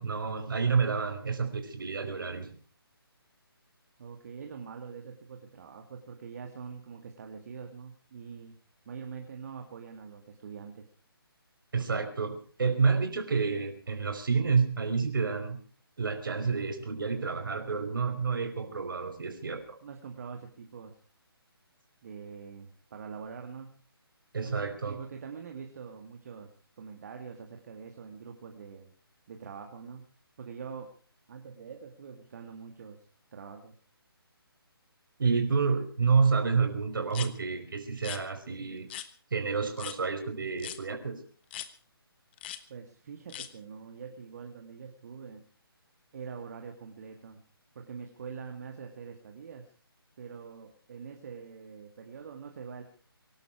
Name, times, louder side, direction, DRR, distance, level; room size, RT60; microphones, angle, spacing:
voice 1, 0.0-2.6 11.7-15.6 16.0-19.8 24.3-24.9 35.2-38.9 39.3-41.2, right 5 dB, 55° right, 5 dB, 5.0 m, -29 dB
voice 2, 4.0-8.6 8.9-10.9 19.8-20.9 22.0-23.8 24.8-28.9 29.3-30.9 31.3-33.1 33.3-33.8 42.7-45.4 46.1-47.4 47.8-49.7 50.2-52.8, right 6 dB, 40° right, 3 dB, 2.2 m, -44 dB
sound 1, 37.1-37.3 38.0-38.2 38.9-39.1 39.8-40.0 40.6-40.8 41.5-41.7 42.4-42.6 43.3-43.5, left 12 dB, 25° left, 1.2 m, -39 dB
24.5 x 12.0 x 4.7 m, 0.43 s
figure-of-eight pair, 145°, 13 cm